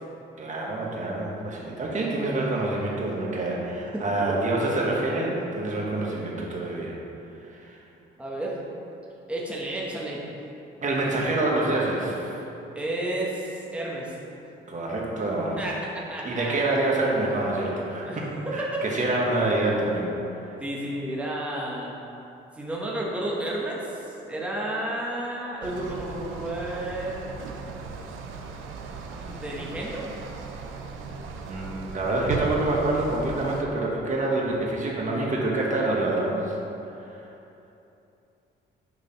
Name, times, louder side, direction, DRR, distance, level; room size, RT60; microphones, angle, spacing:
voice 1, 0.4-6.9 7.5-7.8 10.8-12.4 14.7-15.6 16.2-18.3 18.5-20.1 31.4-36.5, right 2 dB, 40° right, -3 dB, 1.5 m, -26 dB
voice 2, 3.9-4.4 8.2-8.6 9.3-10.2 12.7-14.1 15.6-15.8 16.1-16.6 18.0-18.2 18.5-18.6 20.6-21.9 22.6-27.3 29.2-30.0, right 1 dB, 5° right, -4 dB, 1.1 m, -32 dB
sound 1, 25.6-33.6, right 4 dB, 90° right, 0.6 m, -37 dB
8.1 x 3.4 x 5.5 m, 2.9 s
cardioid pair, 90°, 20 cm